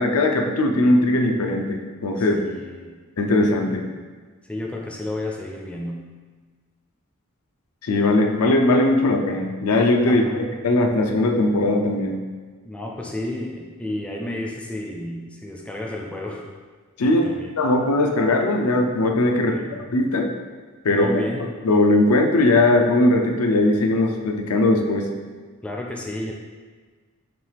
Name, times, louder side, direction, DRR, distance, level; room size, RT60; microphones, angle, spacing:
voice 1, 0.0-2.5 3.2-3.9 7.8-12.2 17.0-17.3 17.6-19.6 19.9-20.3 20.8-21.2 21.6-25.1, left 2 dB, 85° left, 2 dB, 0.5 m, -19 dB
voice 2, 2.2-3.0 4.4-6.0 10.1-10.4 12.6-16.4 17.0-17.5 19.4-19.8 20.9-21.5 25.6-26.3, left 1 dB, 5° left, -1 dB, 0.4 m, -32 dB
5.8 x 2.4 x 3.3 m, 1.4 s
head